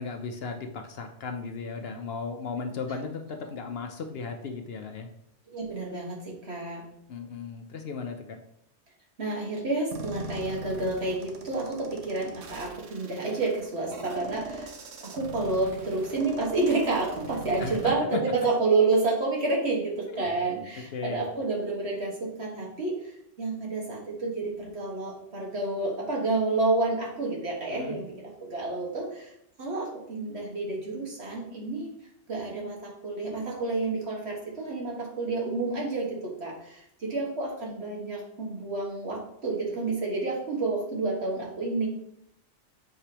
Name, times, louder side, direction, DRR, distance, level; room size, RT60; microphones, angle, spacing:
voice 1, 0.0-5.1 7.1-8.4 17.6-18.2 20.1-20.3 20.9-21.2 27.7-28.0, left 5 dB, 60° left, 5 dB, 0.8 m, -36 dB
voice 2, 5.5-6.8 9.2-14.7 15.0-22.9 23.4-28.1 28.4-29.3 29.6-31.9 32.3-41.9, right 3 dB, 60° right, -3 dB, 1.8 m, -29 dB
sound 1, 9.9-17.9, right 2 dB, 90° right, 1.2 m, -40 dB
6.5 x 5.0 x 2.9 m, 0.75 s
omnidirectional pair, 1.2 m